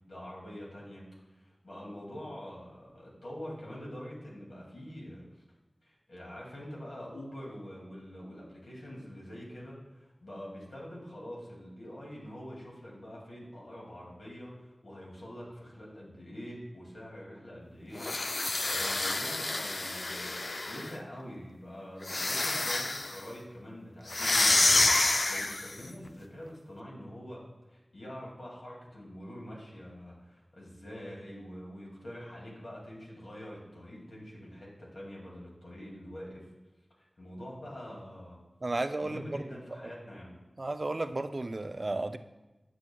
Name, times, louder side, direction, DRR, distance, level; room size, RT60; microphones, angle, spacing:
voice 1, 0.1-1.0 1.3-5.2 5.8-18.0 18.4-24.9 25.3-27.4 27.7-36.5 37.0-38.4 39.0-40.3, equal, 90° left, -4 dB, 2.4 m, -45 dB
sound 1, 18.0-20.9 22.0-23.2 24.1-25.8, left 2 dB, 60° left, 0.4 m, -28 dB
voice 2, 38.6-39.5 39.8-39.9 40.6-42.2, right 2 dB, 50° right, 9 dB, 0.4 m, -33 dB
9.8 x 7.4 x 2.3 m, 1.1 s
wide cardioid pair, 70°, 0 cm